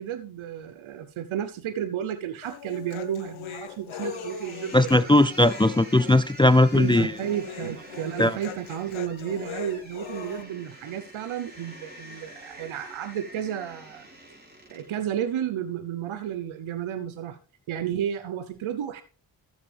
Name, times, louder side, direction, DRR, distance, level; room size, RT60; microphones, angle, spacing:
voice 1, 0.0-5.1 6.7-14.1 14.7-17.4 17.7-19.0, right 10 dB, 85° right, 0.8 m, -32 dB
Human voice, 2.4-10.4, left 8 dB, 80° left, 1.2 m, -40 dB
sound 1, 4.0-15.0, right 1 dB, 20° right, 4.7 m, -46 dB
voice 2, 4.7-7.1 8.2-8.4, left 1 dB, 10° left, 0.4 m, -19 dB
13.5 x 7.3 x 3.4 m
cardioid pair, 45°, 47 cm